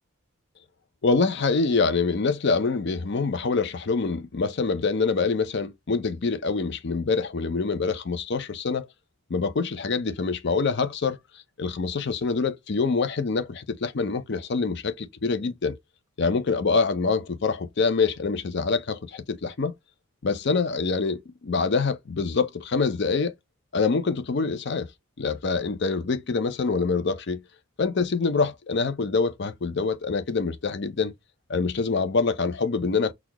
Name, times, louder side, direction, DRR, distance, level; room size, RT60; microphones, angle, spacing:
voice 1, 1.0-8.9 9.3-11.2 11.6-15.8 16.2-19.7 20.2-23.3 23.7-24.9 25.2-27.4 27.8-31.1 31.5-33.1, left 4 dB, 50° left, 0.5 m, -25 dB
4.1 x 2.3 x 2.9 m
head